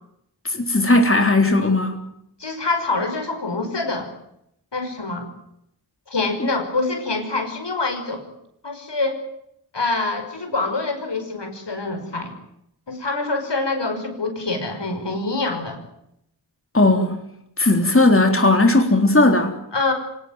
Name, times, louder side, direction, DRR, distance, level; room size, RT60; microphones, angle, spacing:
voice 1, 0.4-2.0 16.7-17.2 17.6-19.5, left 2 dB, 30° left, 4 dB, 3.8 m, -16 dB
voice 2, 2.4-4.1 4.7-5.3 6.1-8.3 8.6-9.2 9.7-12.3 12.9-15.8 19.7-19.9, left 3 dB, 75° left, 6 dB, 5.6 m, -25 dB
26.0 x 18.5 x 9.4 m, 0.78 s
wide cardioid pair, 50°, 42 cm